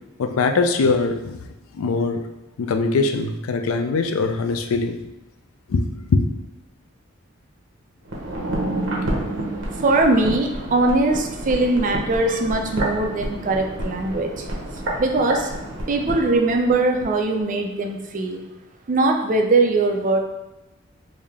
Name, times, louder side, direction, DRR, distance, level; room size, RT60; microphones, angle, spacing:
voice 1, 0.2-1.4 1.7-2.2 2.6-5.0 5.7-5.8 6.1-6.2, left 4 dB, 85° left, 7 dB, 0.4 m, -21 dB
sound 1, 8.0-17.1 17.4-17.5, right 1 dB, 60° right, 0.8 m, -29 dB
voice 2, 9.7-14.5 15.0-15.5 15.9-18.4 18.9-20.2, right 2 dB, 40° right, 3 dB, 0.4 m, -21 dB
3.3 x 2.7 x 3.5 m, 0.99 s
head